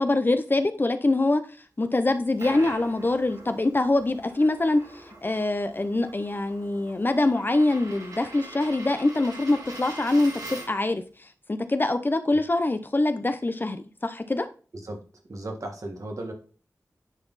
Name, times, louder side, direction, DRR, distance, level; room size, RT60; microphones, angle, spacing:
voice 1, 0.0-1.4 1.8-11.0 11.5-14.5, left 2 dB, 35° left, 0.6 m, -24 dB
Coin (dropping), 2.0-10.9, right 2 dB, 85° right, 2.2 m, -43 dB
voice 2, 15.3-16.3, right 1 dB, 65° right, 1.6 m, -35 dB
9.9 x 4.1 x 4.0 m
wide cardioid pair, 75°, 6 cm